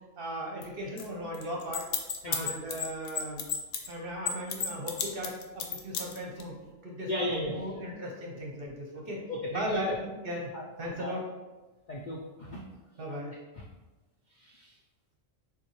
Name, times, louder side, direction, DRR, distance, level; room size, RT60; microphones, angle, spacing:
voice 1, 0.2-1.9 2.3-3.5 3.9-6.6 6.8-9.2 9.5-10.5 10.8-11.2 13.0-13.4, equal, 50° right, -1 dB, 0.8 m, -37 dB
sound 1, 0.6-0.7 1.0-1.1 1.3-3.9 4.3-6.4, left 7 dB, 80° left, 1.0 m, -31 dB
voice 2, 7.1-7.6 9.3-10.0 10.5-10.6 11.0-11.1 11.9-12.6 13.6-13.7 14.3-14.8, left 1 dB, 55° left, -3 dB, 0.5 m, -35 dB
6.7 x 2.4 x 3.1 m, 1.2 s
omnidirectional pair, 1.4 m